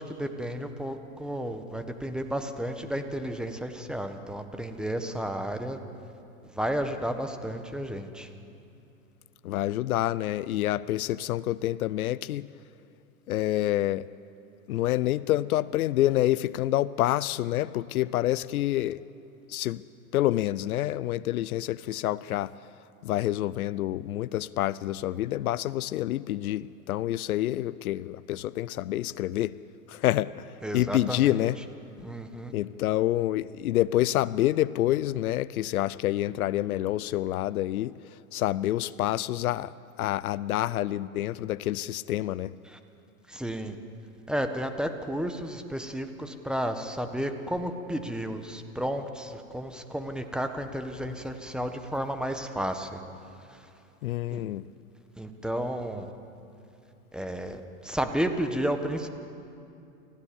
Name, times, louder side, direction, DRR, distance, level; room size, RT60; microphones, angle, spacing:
voice 1, 0.0-5.8 6.5-8.3 30.6-31.5 32.0-32.5 42.6-42.8 43.3-43.7 44.3-53.0 53.5-53.6 54.3-54.4 55.2-56.1 57.1-59.1, equal, ahead, 6 dB, 1.4 m, -32 dB
voice 2, 9.4-12.5 13.3-14.1 14.7-19.0 19.5-19.8 20.1-22.5 23.0-29.6 29.9-30.5 30.7-31.6 32.5-38.0 38.3-42.5 54.0-54.7, left 14 dB, 80° left, 20 dB, 0.6 m, -27 dB
30.0 x 15.0 x 7.1 m, 2.7 s
hypercardioid pair, 105°, 43 cm